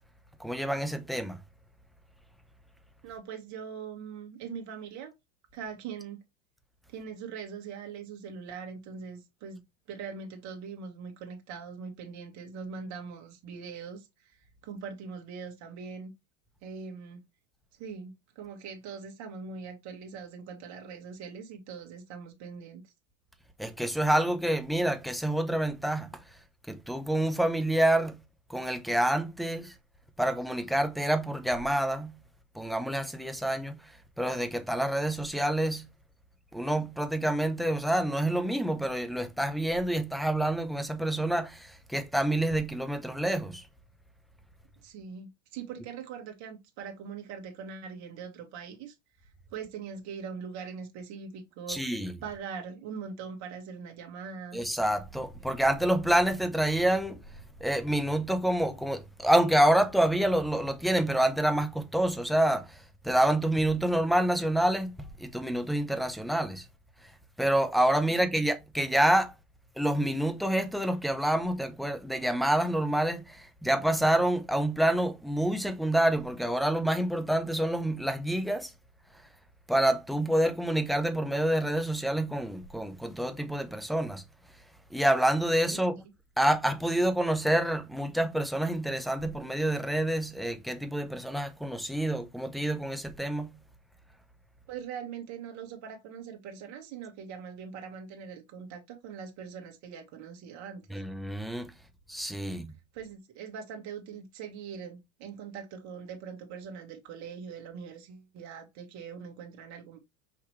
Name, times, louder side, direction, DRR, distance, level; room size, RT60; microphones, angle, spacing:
voice 1, 0.4-1.4 23.6-26.1 26.7-28.2 28.5-29.7 30.2-32.2 32.5-33.8 34.2-35.9 36.5-43.6 51.7-52.1 54.5-57.2 57.6-62.8 63.0-66.6 67.4-69.3 69.8-78.7 79.7-84.2 84.9-85.9 86.4-93.5 100.9-101.7 102.1-102.7, right 1 dB, ahead, 0.7 m, -27 dB
voice 2, 3.0-5.1 5.5-6.2 6.9-9.6 9.9-14.4 14.6-16.1 16.6-17.2 17.8-22.9 44.8-48.9 49.5-51.9 52.2-54.6 68.0-68.4 85.7-86.0 94.7-100.8 102.4-102.6 102.9-110.0, right 6 dB, 45° right, 1.7 m, -42 dB
5.8 x 2.9 x 3.1 m
hypercardioid pair, 105°, 39 cm